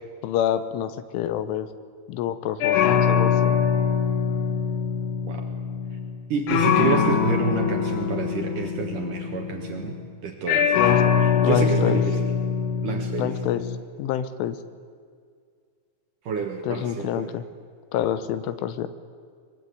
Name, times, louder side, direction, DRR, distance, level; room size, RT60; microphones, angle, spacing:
voice 1, 0.2-1.7 2.1-3.6 10.8-11.0 11.4-12.0 13.2-13.6 14.0-14.6 16.6-17.4 17.9-18.9, left 10 dB, 85° left, 13 dB, 3.4 m, -27 dB
sound 1, 2.6-6.2 6.5-10.1 10.5-13.8, left 7 dB, 65° left, 3.3 m, -23 dB
voice 2, 6.3-10.0 10.2-12.3 12.8-13.4 16.2-17.3, right 5 dB, 60° right, 3 dB, 2.3 m, -28 dB
23.5 x 21.5 x 9.3 m, 2.1 s
omnidirectional pair, 5.6 m